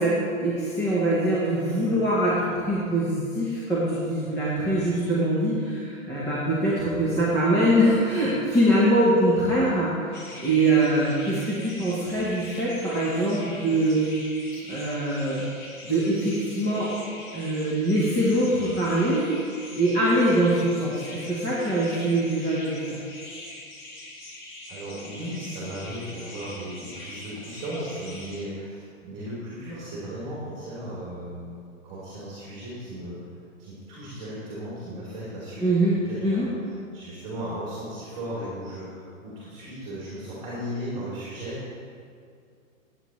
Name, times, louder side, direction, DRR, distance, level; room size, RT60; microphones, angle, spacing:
voice 1, 0.0-14.1 14.7-15.4 15.8-16.9 17.3-19.2 19.7-23.0 35.6-35.9 36.2-36.5, right 1 dB, 5° left, -8 dB, 0.8 m, -23 dB
sound 1, 10.1-28.4, left 2 dB, 35° left, 1.4 m, -42 dB
voice 2, 24.7-31.6 31.8-33.2 33.6-41.6, equal, 10° right, -9 dB, 2.8 m, -36 dB
16.0 x 8.6 x 3.1 m, 2.3 s
hypercardioid pair, 160°, 42 cm